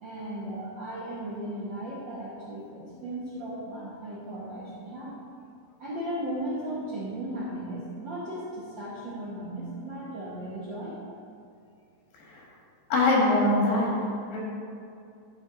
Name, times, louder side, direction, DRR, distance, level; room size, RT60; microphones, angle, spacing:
voice 1, 0.0-5.2 5.8-11.0, right 1 dB, 80° right, -7 dB, 1.0 m, -36 dB
voice 2, 12.9-13.9 14.3-14.4, left 2 dB, 85° left, -3 dB, 3.4 m, -23 dB
11.5 x 5.3 x 3.7 m, 2.5 s
omnidirectional pair, 4.0 m